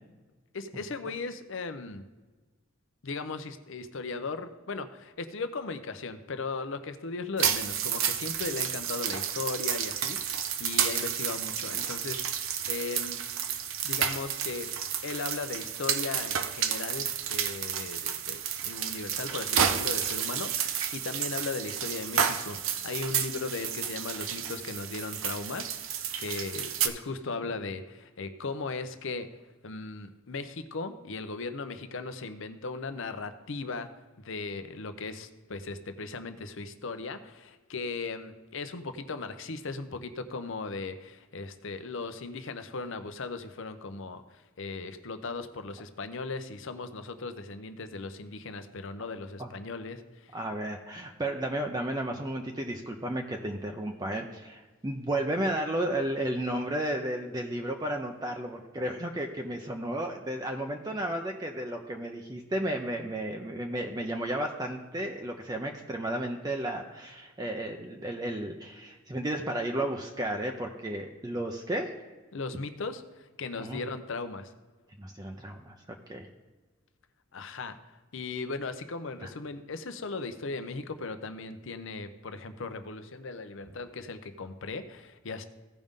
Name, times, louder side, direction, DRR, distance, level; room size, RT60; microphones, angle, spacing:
voice 1, 0.5-2.0 3.0-13.3 13.8-14.7 15.0-29.3 29.6-33.9 34.2-50.4 72.3-74.5 77.3-85.4, left 3 dB, 70° left, 10 dB, 0.7 m, -37 dB
sound 1, 7.4-26.9, right 8 dB, 75° right, 0.7 m, -31 dB
voice 2, 50.3-71.9 73.6-73.8 75.0-76.3 79.2-79.3, right 1 dB, 20° right, 2 dB, 0.6 m, -33 dB
15.5 x 5.2 x 3.6 m, 1.3 s
head